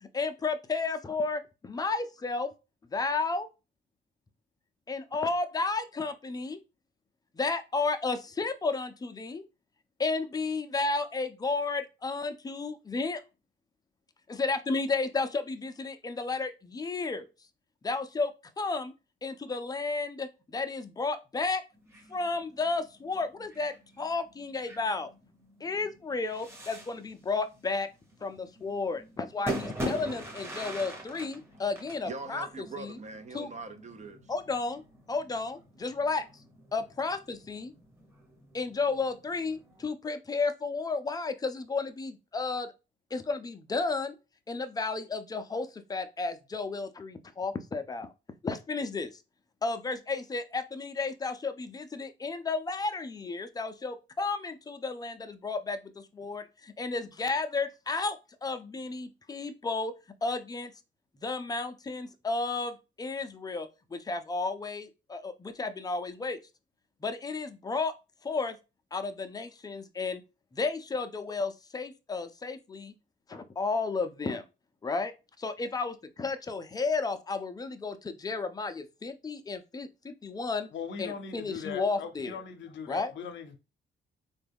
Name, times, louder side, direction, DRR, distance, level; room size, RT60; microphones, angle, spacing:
voice 1, 0.0-2.5 2.9-3.5 4.9-6.6 7.3-9.4 10.0-13.2 14.3-17.3 17.8-18.9 19.2-21.6 22.1-25.1 25.6-27.9 28.2-33.0 33.3-33.5 34.3-34.8 35.1-36.3 36.7-37.7 38.5-42.7 43.1-44.2 44.5-48.1 48.4-49.2 49.6-59.9 60.2-60.7 61.2-66.4 67.0-67.9 68.2-68.6 68.9-70.2 70.5-72.9 73.3-74.4 74.8-80.7 81.0-82.4 82.9-83.1, left 3 dB, 20° left, 0.4 m, -33 dB
sound 1, 21.7-39.9, right 1 dB, 15° right, 1.0 m, -44 dB
voice 2, 32.0-34.3, right 3 dB, 35° right, 0.5 m, -42 dB
voice 3, 80.7-83.6, left 6 dB, 70° left, 0.6 m, -40 dB
3.4 x 2.3 x 3.4 m
cardioid pair, 90°, 20 cm